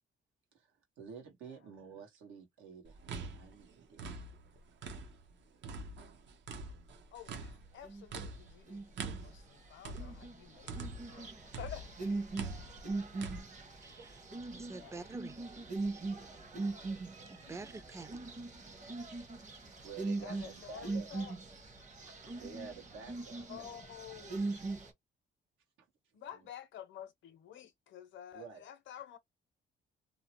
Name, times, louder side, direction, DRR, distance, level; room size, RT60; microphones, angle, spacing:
voice 1, 0.5-3.0 3.3-4.0 17.4-17.6 19.4-21.2 22.0-23.8 25.8-26.5 28.3-28.7, right 6 dB, 85° right, 1.2 m, -51 dB
sound 1, 2.9-5.3 5.6-11.2 11.5-13.4, right 3 dB, 65° right, 0.8 m, -44 dB
voice 2, 7.1-12.2 14.8-14.9 17.4-17.7 20.2-21.4 23.5-24.5 26.1-29.2, left 10 dB, 70° left, 0.7 m, -50 dB
sound 2, 7.8-8.3 8.7-9.2 9.7-24.9, right 3 dB, 40° right, 1.0 m, -41 dB
voice 3, 13.8-14.2 14.5-15.4 15.9-16.0 17.3-18.1, right 3 dB, 15° right, 0.4 m, -47 dB
2.7 x 2.0 x 2.9 m
cardioid pair, 90°, 20 cm